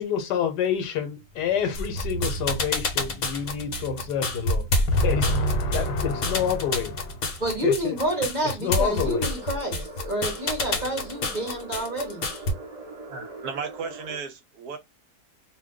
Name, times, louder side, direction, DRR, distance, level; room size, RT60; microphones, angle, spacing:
voice 1, 0.0-8.0 8.4-9.3, left 5 dB, 75° left, 1.3 m, -27 dB
sound 1, 1.1-12.1 12.4-12.5, right 6 dB, 15° left, 0.8 m, -42 dB
sound 2, 1.7-12.5, left 2 dB, 55° left, 0.9 m, -28 dB
voice 2, 7.4-12.2, right 1 dB, 35° right, 0.8 m, -28 dB
sound 3, 8.8-14.2, right 1 dB, 50° right, 0.4 m, -41 dB
voice 3, 13.1-14.8, right 5 dB, 70° right, 1.1 m, -35 dB
2.7 x 2.3 x 3.5 m
omnidirectional pair, 1.8 m